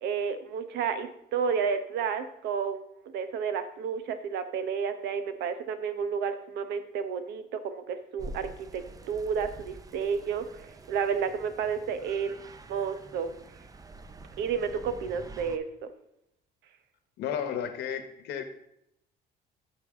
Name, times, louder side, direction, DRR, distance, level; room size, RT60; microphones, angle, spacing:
voice 1, 0.0-2.8 3.1-13.3 14.4-15.9, right 6 dB, 80° right, 10 dB, 0.9 m, -31 dB
sound 1, 8.2-15.6, right 2 dB, 20° right, 0.6 m, -47 dB
voice 2, 17.2-18.4, left 8 dB, 80° left, 8 dB, 1.1 m, -33 dB
13.5 x 4.7 x 3.7 m, 0.80 s
cardioid pair, 110°, 17 cm